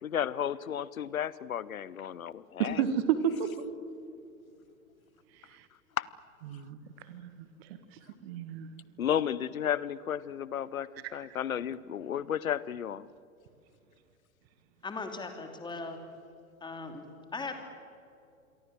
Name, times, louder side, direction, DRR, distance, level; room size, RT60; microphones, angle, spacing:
voice 1, 0.0-2.8 6.0-6.1 9.0-13.1, left 9 dB, 75° left, 20 dB, 0.9 m, -33 dB
voice 2, 2.6-3.7 5.4-5.7 6.5-6.8 7.1-8.7 11.0-11.1, right 8 dB, 45° right, 11 dB, 1.8 m, -32 dB
voice 3, 14.8-16.0 16.6-17.1 17.3-17.5, left 3 dB, 10° left, 6 dB, 2.9 m, -38 dB
27.5 x 23.0 x 7.5 m, 2.5 s
figure-of-eight pair, 100°, 42 cm